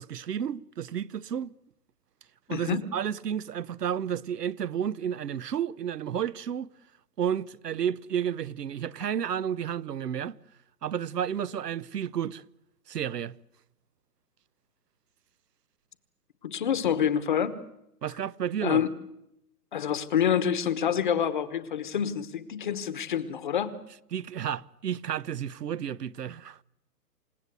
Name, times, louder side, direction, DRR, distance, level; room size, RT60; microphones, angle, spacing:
voice 1, 0.0-1.5 2.5-6.7 7.2-10.4 10.8-12.4 12.9-13.4 18.0-18.8 24.1-26.6, right 9 dB, 75° right, 1.0 m, -31 dB
voice 2, 2.5-2.8 16.4-17.6 18.6-18.9 19.7-23.8, left 8 dB, 30° left, 1.1 m, -27 dB
28.5 x 17.5 x 8.1 m
hypercardioid pair, 170°, 49 cm